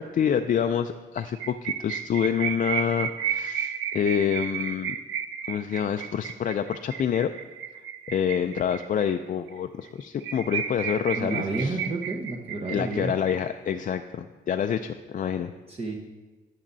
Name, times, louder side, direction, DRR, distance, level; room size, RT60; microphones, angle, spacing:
voice 1, 0.0-5.0 5.5-7.3 8.1-11.8 12.7-15.5, left 8 dB, 40° left, 7 dB, 0.4 m, -27 dB
sound 1, 1.2-9.1 9.5-9.6 9.9-10.0 10.2-13.3, right 9 dB, 85° right, 0.5 m, -32 dB
voice 2, 11.1-13.2 15.7-15.9, right 2 dB, 30° right, -1 dB, 1.1 m, -30 dB
10.5 x 9.8 x 2.7 m, 1.3 s
cardioid pair, 90°, 20 cm